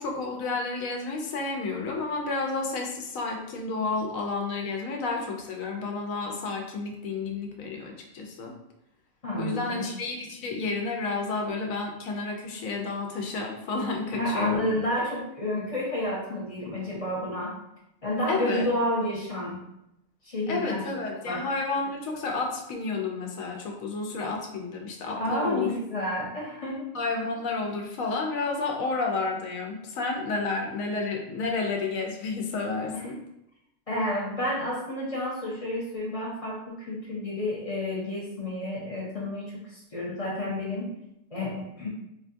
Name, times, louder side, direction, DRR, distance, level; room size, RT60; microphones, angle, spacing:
voice 1, 0.0-8.5 9.4-14.7 18.3-18.7 20.5-25.7 26.9-33.2, left 3 dB, 85° left, 1 dB, 1.1 m, -31 dB
voice 2, 9.2-9.8 14.1-17.6 18.0-19.6 20.2-21.4 25.1-26.9 32.9-33.1 33.9-40.9 41.3-41.9, left 1 dB, 35° left, -5 dB, 0.6 m, -30 dB
4.3 x 2.3 x 2.5 m, 0.84 s
omnidirectional pair, 1.4 m